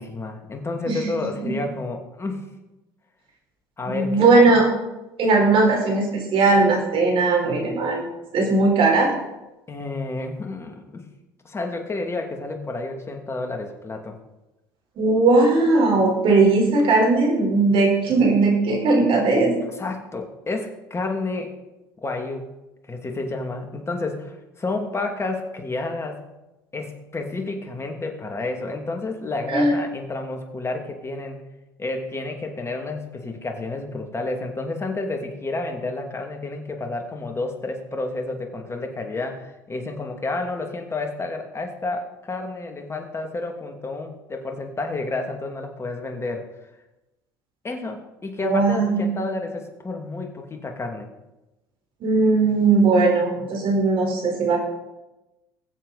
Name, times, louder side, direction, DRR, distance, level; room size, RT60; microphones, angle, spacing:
voice 1, 0.0-2.4 3.8-4.6 9.7-11.1 11.4-14.2 19.8-21.5 22.0-22.5 22.9-26.2 26.7-31.4 31.8-46.5 47.6-51.1, left 2 dB, 25° left, 4 dB, 2.5 m, -30 dB
voice 2, 3.9-4.7 5.2-8.1 8.3-9.1 15.0-19.5 29.5-29.7 48.4-49.1 52.0-54.6, right 3 dB, 50° right, 1 dB, 4.4 m, -18 dB
20.5 x 7.8 x 4.2 m, 1.0 s
hypercardioid pair, 75°, 11 cm